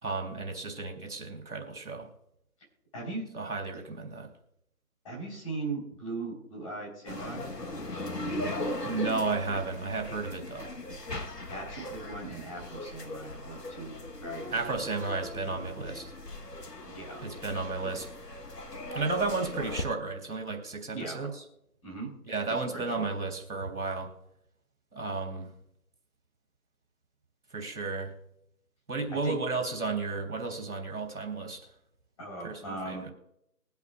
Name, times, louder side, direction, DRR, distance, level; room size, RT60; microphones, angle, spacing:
voice 1, 0.0-2.1 3.3-4.3 8.8-10.7 14.5-16.1 17.2-18.1 18.9-21.4 22.3-24.1 24.9-25.5 27.5-28.1 28.9-31.6 32.4-33.1, right 3 dB, 70° right, 3 dB, 3.5 m, -33 dB
voice 2, 2.9-3.3 3.7-3.8 5.0-7.5 11.5-14.9 16.9-17.2 20.9-21.2 21.8-22.1 22.5-23.1 29.1-29.4 32.2-33.1, right 3 dB, 20° left, -4 dB, 4.0 m, -39 dB
sound 1, 7.1-19.8, left 1 dB, 85° left, 1.4 m, -39 dB
22.0 x 8.3 x 2.4 m, 0.75 s
figure-of-eight pair, 160°, 47 cm